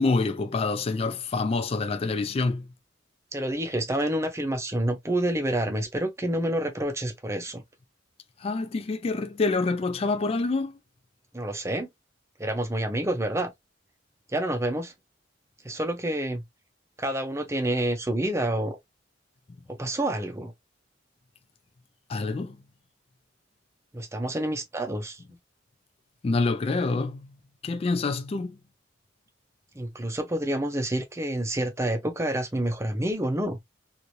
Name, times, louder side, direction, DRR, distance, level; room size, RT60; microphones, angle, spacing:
voice 1, 0.0-2.7 8.4-10.8 22.1-22.6 26.2-27.4 27.6-28.6, left 3 dB, 30° left, 0.3 m, -27 dB
voice 2, 3.3-7.6 11.3-11.9 12.4-13.5 14.3-14.9 15.6-16.4 17.0-18.8 19.8-20.5 23.9-25.2 29.7-33.6, right 1 dB, 15° right, 0.6 m, -28 dB
3.1 x 2.6 x 2.6 m
head